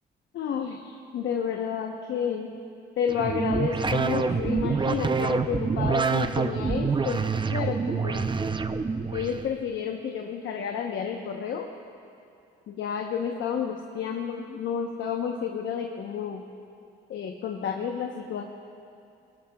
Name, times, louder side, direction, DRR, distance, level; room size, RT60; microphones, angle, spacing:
voice 1, 0.3-2.5 3.0-8.3 9.1-11.7 12.7-16.4 17.1-18.4, left 7 dB, 75° left, 2 dB, 1.0 m, -31 dB
sound 1, 3.1-9.4, right 5 dB, 25° right, 0.6 m, -26 dB
21.5 x 17.5 x 2.3 m, 2.5 s
cardioid pair, 90°, 20 cm